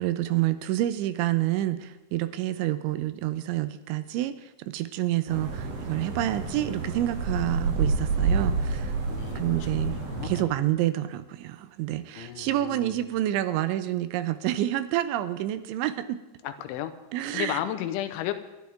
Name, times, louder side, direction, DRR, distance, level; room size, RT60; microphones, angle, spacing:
voice 1, 0.0-8.9 9.4-16.2 17.1-17.6, right 14 dB, 80° right, 12 dB, 3.0 m, -28 dB
sound 1, 5.3-10.4, right 4 dB, 55° right, 3.8 m, -29 dB
voice 2, 9.1-10.6 12.2-13.1 16.4-16.9 17.3-18.3, left 12 dB, 85° left, 7 dB, 3.2 m, -34 dB
29.5 x 11.0 x 3.6 m, 1.1 s
omnidirectional pair, 5.5 m